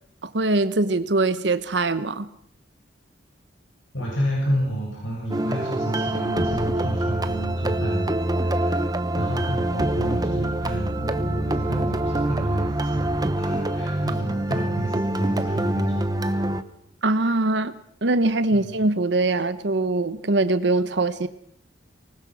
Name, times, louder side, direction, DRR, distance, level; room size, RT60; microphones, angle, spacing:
voice 1, 0.2-2.3 17.0-21.3, right 2 dB, 65° right, 11 dB, 1.0 m, -22 dB
voice 2, 3.9-16.4 18.5-18.7, right 1 dB, 90° left, -2 dB, 7.7 m, -30 dB
sound 1, 5.3-16.6, right 1 dB, 20° right, 1.0 m, -25 dB
25.0 x 20.0 x 6.3 m, 0.67 s
head